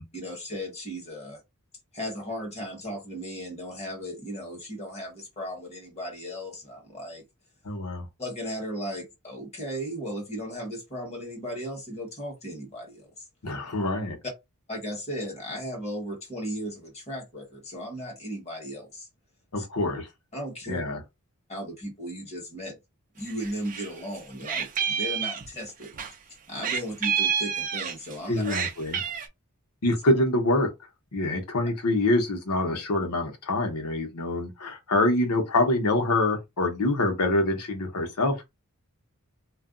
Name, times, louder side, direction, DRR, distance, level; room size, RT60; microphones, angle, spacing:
voice 1, 0.1-1.4 1.9-7.2 8.2-13.2 14.7-19.1 19.6-19.7 20.3-20.8 21.5-22.8 23.1-25.9 26.5-28.4, equal, 30° left, 1.4 m, -36 dB
voice 2, 7.6-8.1 13.4-14.2 19.5-20.1 20.7-21.0 28.3-29.0 29.8-30.7 31.1-38.4, left 2 dB, 85° left, 1.0 m, -25 dB
Meow, 23.3-23.9 24.1-26.1 26.6-28.1 28.4-29.3, right 7 dB, 35° right, 0.5 m, -28 dB
2.5 x 2.2 x 3.7 m
head